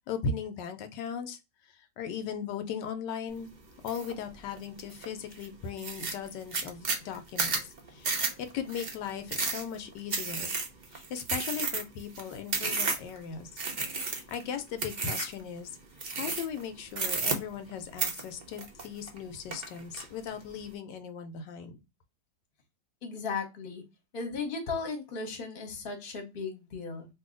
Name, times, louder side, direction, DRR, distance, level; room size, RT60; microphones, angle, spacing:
voice 1, 0.1-3.5 3.8-10.6 10.9-13.6 14.0-15.8 16.1-21.8, left 6 dB, 80° left, 1.2 m, -38 dB
sound 1, 3.9-4.1 4.6-5.1 5.4-5.5 5.8-13.2 13.6-14.4 14.8-15.4 16.0-16.6 16.9-17.7 18.0-19.2 19.5-20.0, right 4 dB, 70° right, 0.4 m, -32 dB
voice 2, 23.0-23.8 24.1-27.1, left 4 dB, 40° left, 1.0 m, -36 dB
2.7 x 2.7 x 3.7 m
omnidirectional pair, 1.9 m